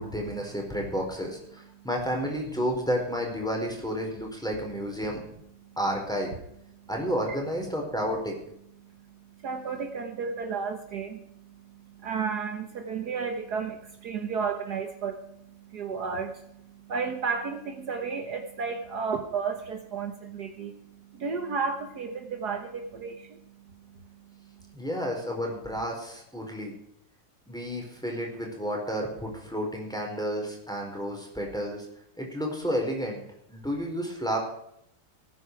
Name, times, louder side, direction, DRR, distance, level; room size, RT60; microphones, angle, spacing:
voice 1, 0.0-5.2 5.8-6.3 6.9-8.4 24.7-26.7 27.5-31.9 32.2-33.2 33.5-34.4, equal, ahead, 0 dB, 4.4 m, -31 dB
voice 2, 8.8-24.8, right 5 dB, 60° right, 5 dB, 1.8 m, -33 dB
19.0 x 9.7 x 4.7 m, 0.75 s
omnidirectional pair, 2.0 m